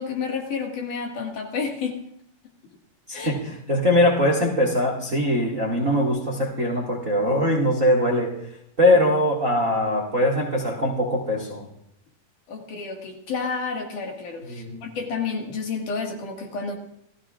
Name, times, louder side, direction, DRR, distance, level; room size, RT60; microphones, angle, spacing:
voice 1, 0.0-2.0 3.1-3.4 12.5-16.8, left 5 dB, 65° left, 1 dB, 3.3 m, -30 dB
voice 2, 3.1-8.3 8.8-11.7 14.5-14.8, left 1 dB, 30° right, -2 dB, 1.9 m, -22 dB
28.5 x 15.5 x 2.5 m, 0.75 s
omnidirectional pair, 4.1 m